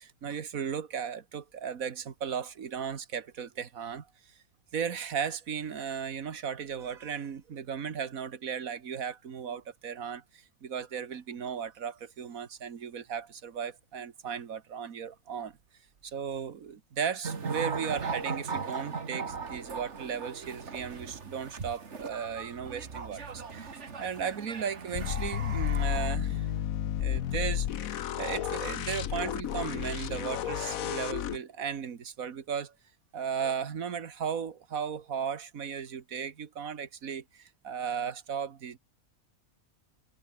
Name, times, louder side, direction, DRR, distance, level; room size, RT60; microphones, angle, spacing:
voice 1, 0.0-4.1 4.7-15.6 16.0-26.5 27.0-32.7 33.1-38.8, right 7 dB, 80° right, 1.9 m, -36 dB
sound 1, 17.2-26.2, right 5 dB, 55° right, 2.1 m, -38 dB
sound 2, 24.9-31.4, left 10 dB, 85° left, 1.3 m, -32 dB
omnidirectional pair, 1.4 m